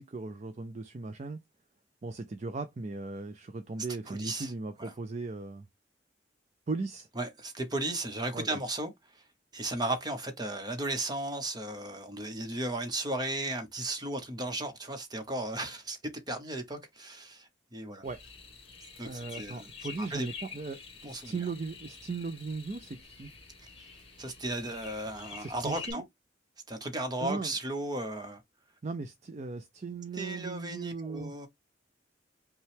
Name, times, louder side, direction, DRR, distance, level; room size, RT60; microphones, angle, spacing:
voice 1, 0.0-1.4 2.0-5.7 6.7-7.1 8.3-8.6 18.0-18.2 19.0-23.3 25.4-26.0 27.2-27.5 28.8-31.3, right 3 dB, 40° right, 0.4 m, -38 dB
voice 2, 4.1-4.5 4.8-4.9 7.2-9.2 9.5-16.0 16.3-18.1 19.0-19.7 20.0-20.3 21.0-21.5 23.8-23.9 24.2-26.0 26.7-28.4 30.1-31.5, right 2 dB, 25° right, 1.0 m, -35 dB
sound 1, 18.0-25.9, left 5 dB, 30° left, 1.8 m, -48 dB
5.4 x 2.3 x 3.4 m
head